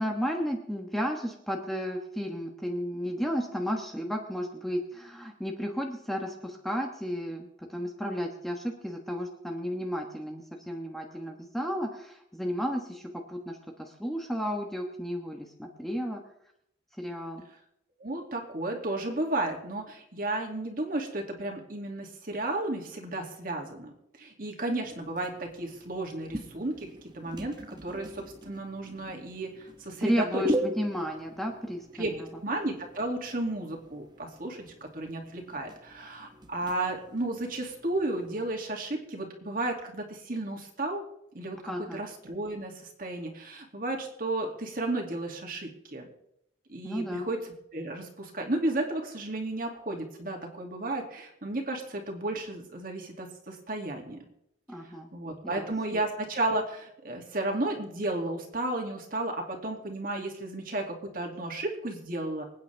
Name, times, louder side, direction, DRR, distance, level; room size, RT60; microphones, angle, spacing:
voice 1, 0.0-16.2 17.0-17.4 30.0-32.3 41.7-42.0 46.8-47.3 54.7-55.1 55.4-56.0, equal, ahead, 1 dB, 1.3 m, -33 dB
voice 2, 18.0-23.9 24.2-26.9 27.1-30.4 32.0-32.1 32.4-41.0 41.3-41.6 41.9-42.7 43.0-46.1 46.7-47.4 47.7-54.2 55.1-62.4, right 2 dB, 50° right, 1 dB, 2.5 m, -33 dB
sound 1, 24.8-38.5, right 1 dB, 25° right, 1.0 m, -40 dB
25.5 x 9.3 x 3.5 m, 0.77 s
head